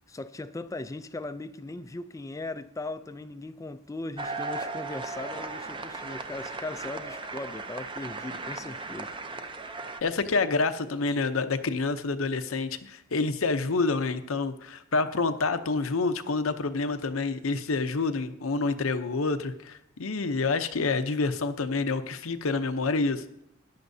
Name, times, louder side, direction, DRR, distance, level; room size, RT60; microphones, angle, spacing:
voice 1, 0.1-9.1, left 2 dB, 15° left, 0.4 m, -38 dB
sound 1, 4.2-10.0, right 3 dB, 25° right, 0.6 m, -37 dB
voice 2, 10.0-23.2, left 3 dB, 85° left, 0.7 m, -28 dB
14.5 x 10.5 x 2.7 m
head